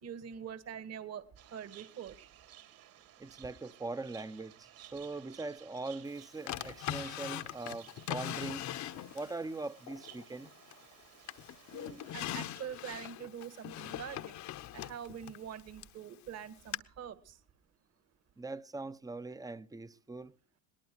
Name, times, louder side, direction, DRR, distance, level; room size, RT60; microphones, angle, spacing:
voice 1, 0.0-2.3 11.7-14.4 14.7-17.4, right 8 dB, 40° right, 1.9 m, -45 dB
sound 1, 1.4-12.5, right 12 dB, 60° right, 3.9 m, -57 dB
voice 2, 3.2-8.7 9.1-10.5 18.4-20.3, right 3 dB, 10° right, 0.8 m, -41 dB
Drawer open or close, 6.5-9.4 9.9-10.9 11.3-16.0 16.7-16.8, left 12 dB, 50° left, 1.0 m, -41 dB
21.5 x 19.0 x 3.0 m
supercardioid pair, 105°, 37 cm